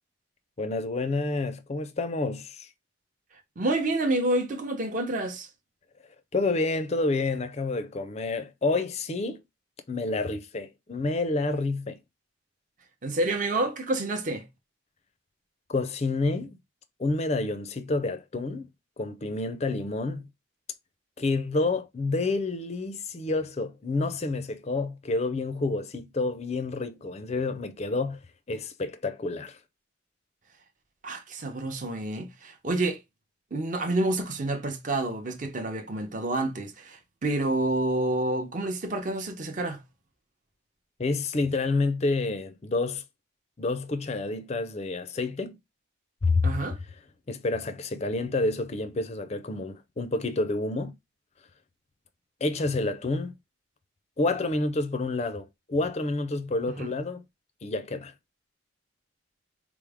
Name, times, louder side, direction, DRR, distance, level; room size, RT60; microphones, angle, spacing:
voice 1, 0.6-2.7 6.3-9.4 9.9-12.0 15.7-16.6 17.0-18.7 19.0-20.3 21.2-28.2 28.5-29.6 41.0-43.0 43.6-45.6 46.2-46.5 47.3-51.0 52.4-53.3 54.2-57.2 57.6-58.1, left 3 dB, 30° left, 0.4 m, -29 dB
voice 2, 3.6-5.5 13.0-14.5 31.0-33.0 33.5-39.8 46.4-46.8 56.8-56.9, right 2 dB, 40° right, 0.7 m, -28 dB
4.5 x 2.0 x 3.4 m
head